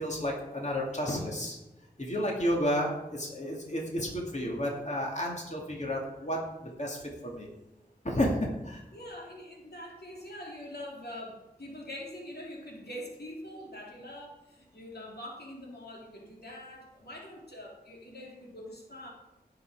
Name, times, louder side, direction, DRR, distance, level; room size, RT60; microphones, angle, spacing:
voice 1, 0.0-1.6 2.0-7.5 8.0-8.8, equal, 45° left, -1 dB, 2.5 m, -31 dB
voice 2, 8.9-19.1, left 1 dB, 85° left, -2 dB, 2.8 m, -44 dB
17.5 x 6.9 x 4.9 m, 0.95 s
wide cardioid pair, 50°, 16 cm